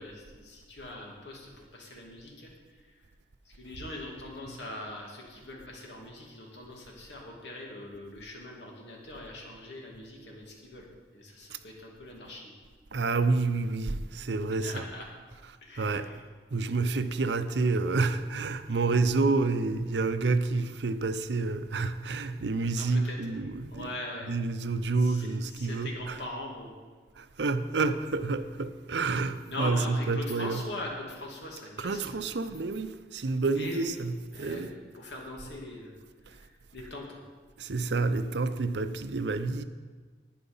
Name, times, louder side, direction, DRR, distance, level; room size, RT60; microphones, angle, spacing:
voice 1, 0.0-2.5 3.5-10.9 11.1-12.5 14.5-15.1 15.6-16.2 22.8-23.2 23.7-24.3 25.0-26.7 29.4-32.3 33.5-33.9 34.3-35.9 36.3-36.5 36.7-37.2, left 1 dB, 85° left, 2.5 m, -41 dB
voice 2, 12.9-14.8 15.4-16.1 16.5-24.0 24.2-26.2 27.2-30.6 31.8-34.7 37.6-39.6, right 3 dB, 80° right, 0.6 m, -29 dB
11.0 x 9.5 x 5.5 m
head